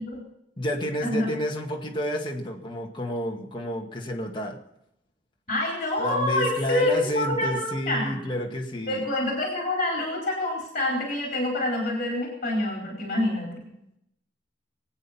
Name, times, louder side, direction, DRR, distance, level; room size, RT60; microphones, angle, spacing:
voice 1, 0.6-4.6 6.0-9.0, equal, 30° left, 0 dB, 2.1 m, -30 dB
voice 2, 5.5-8.2 8.9-13.5, left 1 dB, 45° left, -2 dB, 4.4 m, -26 dB
23.0 x 8.9 x 5.9 m, 0.79 s
head